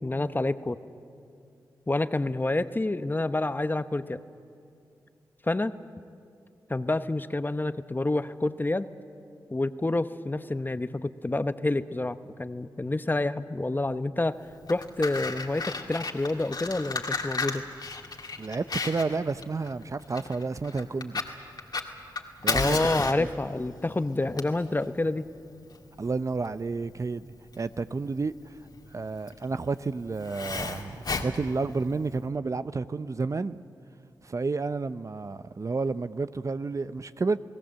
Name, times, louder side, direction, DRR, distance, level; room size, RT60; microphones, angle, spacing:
voice 1, 0.0-0.8 1.9-4.2 5.4-5.8 6.7-8.9 9.5-14.4 14.7-17.6 22.5-25.3, left 2 dB, 25° left, 0.9 m, -28 dB
Fire, 14.5-32.2, left 4 dB, 55° left, 2.2 m, -34 dB
voice 2, 18.4-21.2 22.4-22.8 23.2-23.3 26.0-28.3 28.9-33.6 34.2-37.4, right 4 dB, 40° right, 0.7 m, -31 dB
28.5 x 18.0 x 7.6 m
cardioid pair, 45°, 8 cm